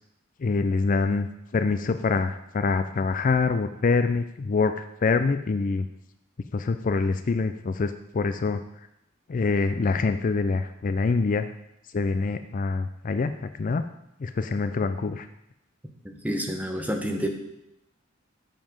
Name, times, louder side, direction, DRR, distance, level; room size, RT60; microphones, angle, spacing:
voice 1, 0.4-1.3 1.5-4.7 5.0-5.8 6.5-8.6 9.3-11.5 11.9-13.3 13.6-13.8 14.2-15.3, left 4 dB, 40° left, 10 dB, 0.4 m, -25 dB
voice 2, 16.0-17.3, equal, 10° right, 3 dB, 1.1 m, -29 dB
7.7 x 7.5 x 5.2 m, 0.84 s
head